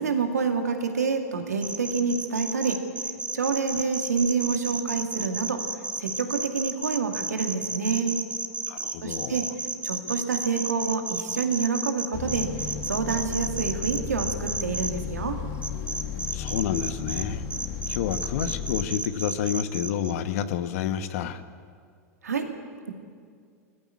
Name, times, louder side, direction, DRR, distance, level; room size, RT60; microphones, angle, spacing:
voice 1, 0.0-2.8 3.3-5.6 6.0-8.2 9.0-9.4 9.8-12.5 12.9-15.4 22.2-22.5, right 5 dB, 85° right, 5 dB, 2.2 m, -27 dB
sound 1, 1.6-14.9 15.6-17.2 17.5-20.1, right 3 dB, 15° right, 1.5 m, -32 dB
voice 2, 8.7-9.4 16.3-17.4 17.9-21.4, left 9 dB, 65° left, 11 dB, 1.2 m, -29 dB
sound 2, 12.1-18.9, left 7 dB, 50° left, 1.5 m, -34 dB
19.5 x 15.0 x 9.6 m, 2.1 s
hypercardioid pair, 95°, 8 cm